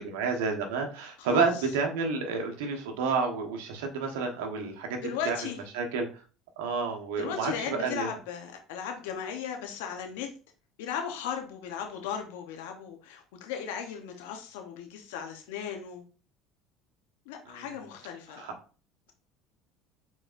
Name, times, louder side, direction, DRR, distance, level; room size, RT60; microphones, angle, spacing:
voice 1, 0.1-5.0 5.2-5.4 5.7-6.1 6.6-8.1 17.5-17.7 18.3-18.5, right 4 dB, 85° right, 3 dB, 1.1 m, -30 dB
voice 2, 5.0-5.6 7.2-10.3 10.8-16.0 17.3-18.4, left 7 dB, 85° left, 3 dB, 0.8 m, -36 dB
4.8 x 4.0 x 2.5 m, 0.37 s
supercardioid pair, 85°, 0 cm